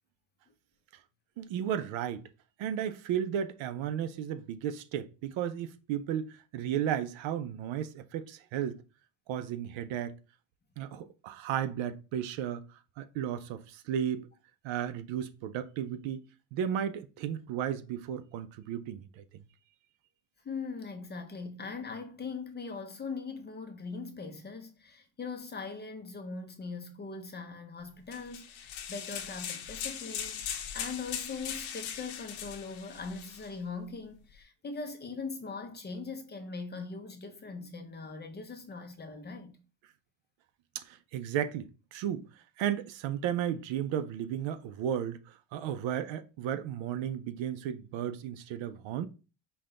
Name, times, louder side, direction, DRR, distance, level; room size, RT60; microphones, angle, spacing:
voice 1, 1.4-2.2 2.6-8.8 9.3-10.1 10.8-14.3 14.6-19.2 40.7-42.3 42.6-49.1, right 9 dB, 70° right, 0.6 m, -34 dB
voice 2, 20.4-39.5, left 4 dB, 20° left, 0.6 m, -41 dB
sound 1, 28.1-33.5, left 8 dB, 70° left, 1.0 m, -39 dB
5.6 x 2.3 x 3.8 m
cardioid pair, 130°, 48 cm